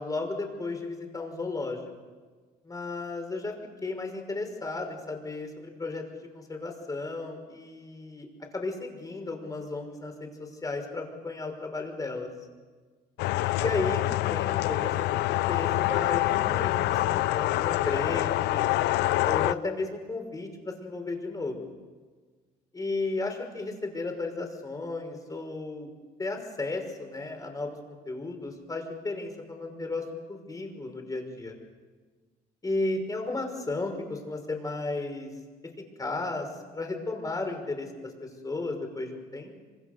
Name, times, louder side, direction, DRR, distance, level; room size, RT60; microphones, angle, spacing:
voice 1, 0.0-1.8 2.6-3.5 3.8-6.0 6.3-8.3 8.5-12.3 13.6-18.7 19.2-21.7 22.7-25.9 26.2-27.8 28.1-31.6 32.6-35.3 36.0-36.5 36.7-39.6, left 3 dB, 20° left, 4 dB, 5.9 m, -34 dB
sound 1, 13.2-19.5, left 17 dB, 85° left, 0.7 m, -26 dB
26.5 x 26.0 x 6.8 m, 1.4 s
cardioid pair, 110°, 17 cm